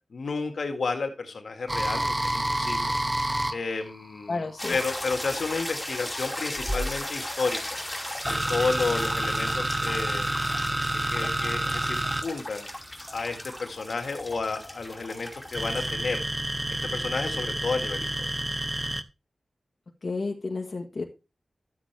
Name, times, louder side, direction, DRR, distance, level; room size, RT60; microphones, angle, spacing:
voice 1, 0.1-2.9 3.5-7.8 8.3-10.8 11.1-12.7 13.1-16.2 16.7-18.3, left 4 dB, 80° left, 5 dB, 1.9 m, -32 dB
sound 1, 1.7-5.1 6.2-13.6 15.5-19.0, right 1 dB, 15° right, 0.7 m, -29 dB
voice 2, 4.3-4.8 20.0-21.0, left 3 dB, 55° left, 2 dB, 1.5 m, -31 dB
sound 2, 4.6-15.9, left 1 dB, 15° left, 2.6 m, -36 dB
12.0 x 7.8 x 3.4 m, 0.28 s
wide cardioid pair, 110°, 0 cm